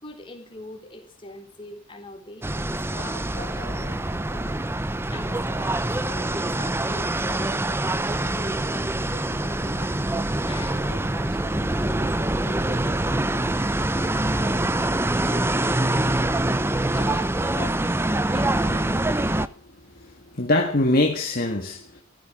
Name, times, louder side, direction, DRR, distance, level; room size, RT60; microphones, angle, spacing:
voice 1, 0.0-16.2 16.8-17.8 18.3-19.1, left 2 dB, 25° left, 3.9 m, -42 dB
sound 1, 2.4-19.5, right 1 dB, 10° right, 0.6 m, -25 dB
voice 2, 20.0-22.0, left 1 dB, 45° left, 1.7 m, -23 dB
14.5 x 13.5 x 6.0 m
head